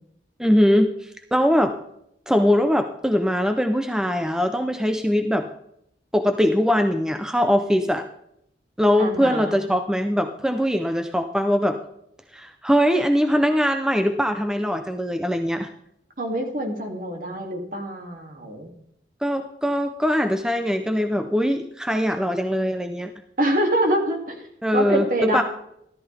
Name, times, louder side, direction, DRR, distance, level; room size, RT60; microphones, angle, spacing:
voice 1, 0.4-1.7 2.3-5.5 6.1-8.1 8.8-11.8 12.3-15.7 19.2-23.1 24.6-25.4, equal, 5° right, 7 dB, 0.5 m, -21 dB
voice 2, 9.0-9.6 16.2-18.7 23.4-24.3 24.7-25.4, right 1 dB, 50° right, 2 dB, 2.6 m, -25 dB
14.0 x 13.5 x 3.4 m, 0.74 s
head